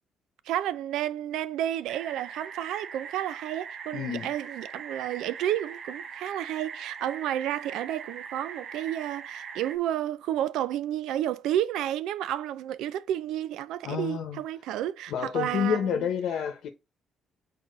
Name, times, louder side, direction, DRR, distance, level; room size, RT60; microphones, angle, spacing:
voice 1, 0.5-16.1, right 12 dB, 90° right, 0.5 m, -31 dB
sound 1, 1.9-9.8, right 6 dB, 60° right, 0.9 m, -41 dB
voice 2, 3.9-4.3 13.8-14.4 15.1-16.7, left 8 dB, 80° left, 1.0 m, -29 dB
6.6 x 4.3 x 3.9 m
cardioid pair, 90°, 0 cm